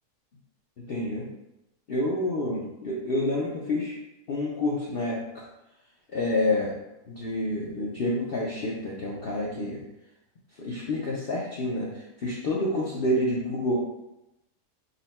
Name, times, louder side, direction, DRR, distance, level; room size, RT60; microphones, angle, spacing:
voice 1, 0.9-1.3 1.9-4.0 4.3-5.4 6.1-6.7 7.1-9.8 10.6-13.8, left 1 dB, 75° left, -4 dB, 0.5 m, -28 dB
4.0 x 2.1 x 4.1 m, 0.92 s
omnidirectional pair, 1.7 m